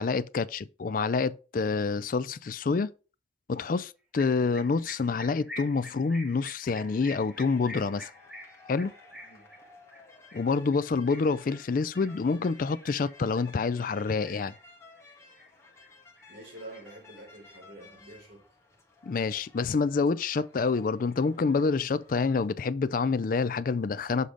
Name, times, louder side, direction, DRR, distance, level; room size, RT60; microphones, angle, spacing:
voice 1, 0.0-2.9 3.5-8.1 8.7-8.9 10.3-14.5 19.0-24.3, left 4 dB, 45° left, 0.4 m, -27 dB
sound 1, 4.2-13.5 13.9-14.6 15.0-15.9 16.2-17.5, left 1 dB, 5° right, 1.2 m, -47 dB
sound 2, 6.6-22.5, left 3 dB, 15° left, 1.4 m, -56 dB
voice 2, 16.3-18.5, right 1 dB, 80° right, 4.1 m, -47 dB
6.8 x 3.8 x 4.9 m
head